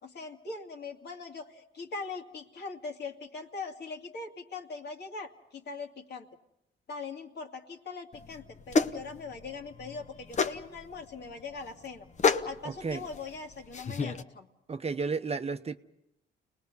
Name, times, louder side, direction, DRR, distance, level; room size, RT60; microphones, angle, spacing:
voice 1, 0.0-6.3 6.9-12.1 12.3-14.5, left 4 dB, 55° left, 2.4 m, -41 dB
sound 1, 8.1-14.2, left 5 dB, 35° left, 1.0 m, -32 dB
voice 2, 12.6-13.0 14.7-15.8, right 4 dB, 30° right, 0.8 m, -32 dB
29.5 x 20.0 x 5.5 m
cardioid pair, 90°, 20 cm